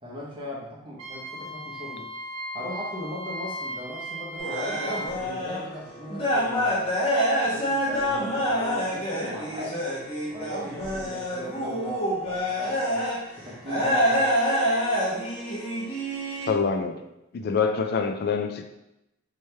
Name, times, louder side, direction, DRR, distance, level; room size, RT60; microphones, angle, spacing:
voice 1, 0.0-2.1 2.5-6.9 7.4-9.9 10.3-13.1 13.4-14.3, left 1 dB, 25° right, -5 dB, 1.0 m, -39 dB
Wind instrument woodwind instrument, 1.0-5.1, right 1 dB, 70° right, 0.7 m, -36 dB
sound 1, 4.4-5.6 5.9-13.2 13.7-16.5, equal, 30° left, 1.0 m, -26 dB
voice 2, 16.5-17.0 17.3-18.6, left 5 dB, 50° left, 6 dB, 0.4 m, -25 dB
3.1 x 2.9 x 3.3 m, 0.89 s
head